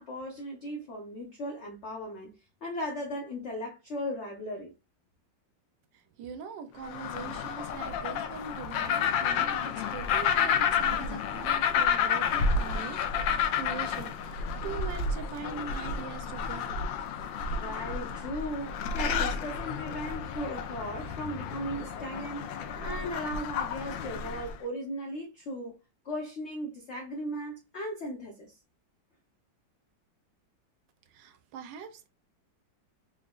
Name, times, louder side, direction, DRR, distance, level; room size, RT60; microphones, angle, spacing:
voice 1, 0.0-2.3 2.6-4.7 17.5-25.8 26.0-28.6, equal, 55° left, 0.8 m, -37 dB
voice 2, 6.2-16.8 31.1-32.1, right 7 dB, 75° right, 1.2 m, -42 dB
sound 1, 6.8-24.6, left 6 dB, 80° left, 1.3 m, -30 dB
3.6 x 3.6 x 2.3 m
omnidirectional pair, 2.1 m